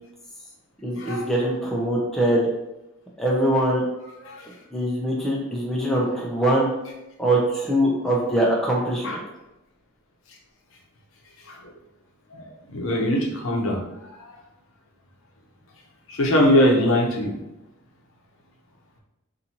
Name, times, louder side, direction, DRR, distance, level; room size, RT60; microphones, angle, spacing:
voice 1, 0.8-2.5 3.2-3.8 4.7-6.7 7.2-9.2, right 1 dB, ahead, -4 dB, 0.5 m, -22 dB
voice 2, 12.3-13.8 16.1-17.3, left 1 dB, 75° left, -1 dB, 0.7 m, -21 dB
4.2 x 2.6 x 2.8 m, 0.91 s
head